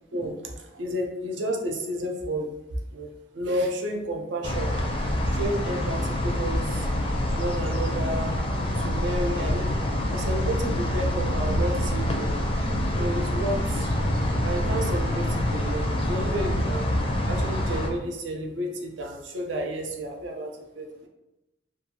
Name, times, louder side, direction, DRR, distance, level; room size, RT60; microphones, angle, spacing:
voice 1, 0.1-2.5 2.9-4.7 5.3-6.9 7.4-8.4 8.8-9.7 10.1-12.3 12.9-13.9 14.4-16.9 17.3-20.9, right 1 dB, 70° right, 2 dB, 0.5 m, -31 dB
sound 1, 4.4-17.9, left 1 dB, 30° left, 0.4 m, -26 dB
2.6 x 2.3 x 2.8 m, 0.94 s
head